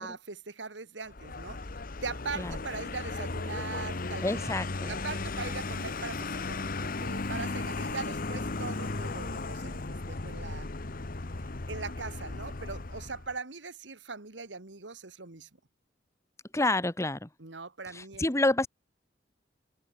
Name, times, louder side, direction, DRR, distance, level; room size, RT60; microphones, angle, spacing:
voice 1, 0.0-4.5 4.9-10.7 11.7-15.5 17.4-18.3, right 4 dB, 90° right, 2.0 m, -40 dB
Vehicle, 1.1-13.3, left 3 dB, 50° left, 1.1 m, -36 dB
voice 2, 4.2-4.9 16.5-17.3 17.9-18.7, left 2 dB, 15° left, 1.2 m, -28 dB
open air
head